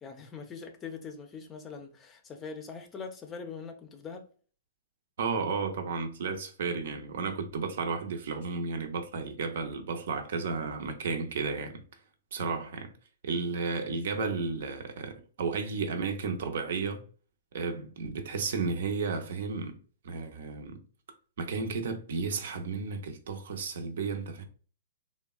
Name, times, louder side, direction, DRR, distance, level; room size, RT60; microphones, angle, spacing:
voice 1, 0.0-4.2, left 5 dB, 20° left, 0.5 m, -42 dB
voice 2, 5.2-11.8 12.3-12.9 13.2-17.0 17.5-19.8 20.0-20.8 21.4-24.4, right 4 dB, 70° right, 0.6 m, -33 dB
3.4 x 2.1 x 2.3 m
hypercardioid pair, 135°, 0 cm